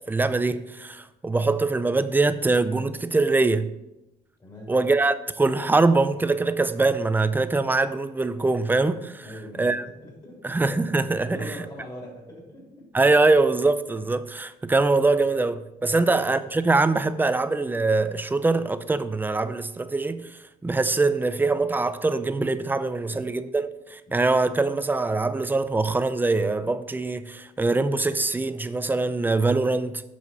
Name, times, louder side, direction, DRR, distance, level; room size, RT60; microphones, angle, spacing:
voice 1, 0.1-3.7 4.7-9.2 9.6-9.8 10.4-11.4 12.9-30.0, right 3 dB, 10° right, 0.5 m, -23 dB
voice 2, 4.4-4.8 9.2-9.8 10.0-10.6 11.2-12.9 15.9-16.1 23.0-23.2, left 1 dB, 25° left, 3.5 m, -41 dB
7.8 x 5.6 x 5.5 m
cardioid pair, 110°, 17 cm